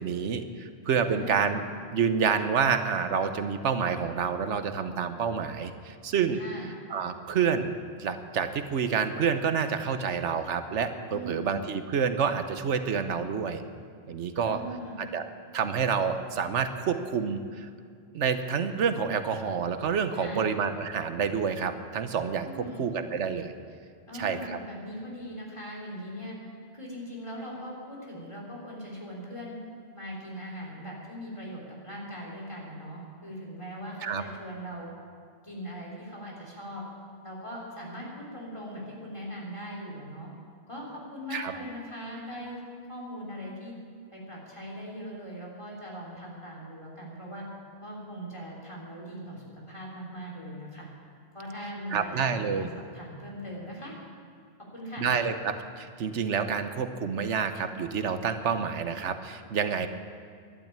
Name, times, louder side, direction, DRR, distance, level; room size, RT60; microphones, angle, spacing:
voice 1, 0.0-1.6 1.9-6.4 6.9-7.7 8.0-13.6 14.1-14.6 15.1-15.2 15.5-17.7 18.1-22.5 22.8-23.5 24.2-24.6 34.0-34.2 41.3-41.5 51.9-52.7 55.0-59.9, right 6 dB, 80° right, 9 dB, 1.2 m, -28 dB
voice 2, 1.0-1.5 6.3-6.7 11.1-11.6 14.4-15.1 20.1-20.5 22.4-23.0 24.1-26.4 26.7-29.6 29.9-34.9 35.4-36.8 37.2-40.3 40.7-42.6 42.9-43.7 44.1-47.4 47.8-50.9 51.3-54.0 54.7-55.1, equal, 25° left, -4 dB, 3.8 m, -40 dB
12.0 x 11.5 x 8.7 m, 2.3 s
omnidirectional pair, 1.2 m